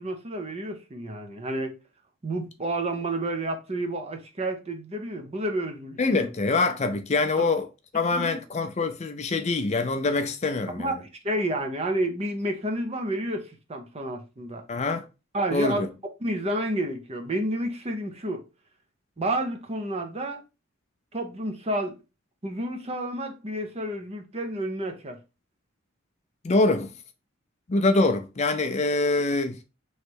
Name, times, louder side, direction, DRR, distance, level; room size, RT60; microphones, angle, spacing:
voice 1, 0.0-1.8 2.2-6.3 8.1-8.4 10.7-14.6 15.3-15.9 16.2-18.4 19.2-20.4 21.1-22.0 22.4-25.2 28.9-29.0, right 1 dB, 30° right, 0.7 m, -30 dB
voice 2, 6.0-7.7 7.9-10.9 14.7-15.0 15.5-15.9 26.4-26.9 27.7-29.6, left 3 dB, 35° left, 0.5 m, -24 dB
3.2 x 3.1 x 4.5 m
head